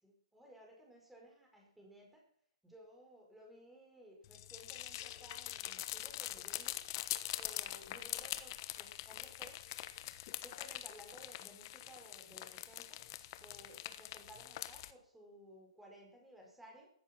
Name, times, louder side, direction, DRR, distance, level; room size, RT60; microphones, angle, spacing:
voice 1, 0.0-2.2 2.6-6.8 7.4-9.6 10.4-13.0 13.4-16.9, equal, 5° right, 0 dB, 5.0 m, -58 dB
sound 1, 4.2-14.9, left 15 dB, 35° left, 1.1 m, -44 dB
16.0 x 14.0 x 6.2 m, 0.65 s
hypercardioid pair, 160°, 3 cm